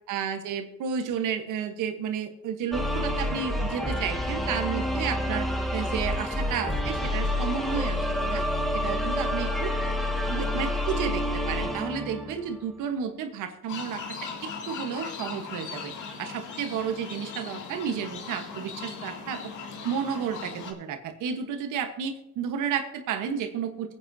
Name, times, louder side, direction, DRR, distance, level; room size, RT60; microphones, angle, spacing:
voice 1, 0.1-8.4 8.7-9.7 10.3-14.0 14.4-15.9 16.2-19.4 19.8-24.0, right 7 dB, 90° right, 6 dB, 1.3 m, -32 dB
sound 1, 2.7-12.7, left 1 dB, ahead, 1.8 m, -28 dB
sound 2, 13.7-20.7, left 5 dB, 80° left, 2.1 m, -39 dB
22.5 x 8.8 x 2.8 m, 0.89 s
cardioid pair, 90°, 30 cm